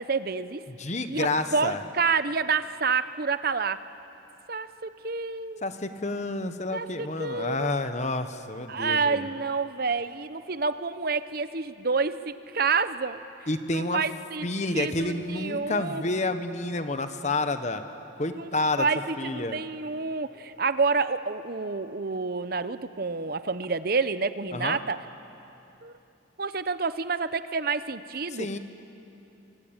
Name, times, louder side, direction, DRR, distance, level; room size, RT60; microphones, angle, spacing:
voice 1, 0.0-0.6 1.1-3.8 4.5-5.7 6.7-7.7 8.7-13.2 13.7-14.5 14.7-16.0 18.3-18.5 18.8-25.0 25.8-26.0 26.4-28.5, right 4 dB, 50° right, 13 dB, 0.8 m, -28 dB
voice 2, 0.7-1.8 5.6-9.3 13.5-14.0 14.4-17.8 18.2-18.9 19.2-19.6 24.5-24.8 28.3-28.6, left 2 dB, 35° left, 9 dB, 1.1 m, -29 dB
26.5 x 24.5 x 8.9 m, 2.9 s
head